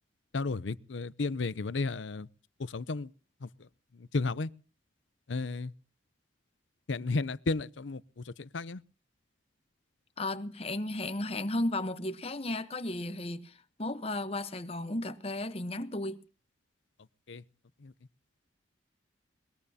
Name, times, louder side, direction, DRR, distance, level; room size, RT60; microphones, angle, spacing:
voice 1, 0.3-2.3 2.6-3.1 3.4-3.5 4.1-4.5 5.3-5.7 6.9-8.8 17.3-17.4 17.8-17.9, left 3 dB, 80° left, 0.7 m, -33 dB
voice 2, 10.2-16.2, left 1 dB, 30° left, 1.0 m, -34 dB
21.0 x 21.0 x 2.8 m
head